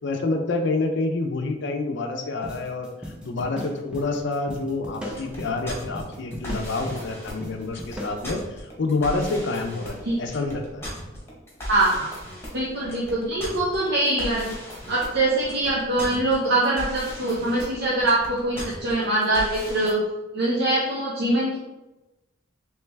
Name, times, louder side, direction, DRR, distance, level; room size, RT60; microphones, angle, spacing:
voice 1, 0.0-10.9, left 3 dB, 65° left, 5 dB, 0.5 m, -28 dB
sound 1, 2.4-8.3, equal, 5° right, 0.6 m, -38 dB
sound 2, 5.1-19.9, equal, 15° left, 1.1 m, -37 dB
voice 2, 11.7-12.1 12.5-14.5 14.9-20.0 20.3-21.6, right 2 dB, 60° right, -5 dB, 0.6 m, -23 dB
3.2 x 3.1 x 3.3 m, 1.0 s
head